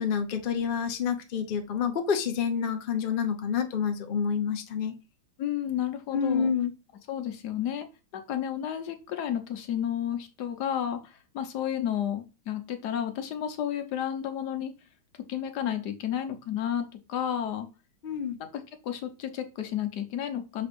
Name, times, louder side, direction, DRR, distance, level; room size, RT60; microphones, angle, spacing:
voice 1, 0.0-4.9 6.1-6.7 18.0-18.4, left 7 dB, 80° left, 0.4 m, -28 dB
voice 2, 5.4-6.5 7.1-7.9 8.1-14.7 15.3-17.7 18.5-20.7, left 10 dB, 60° left, 1.3 m, -32 dB
5.7 x 3.5 x 5.1 m
omnidirectional pair, 2.3 m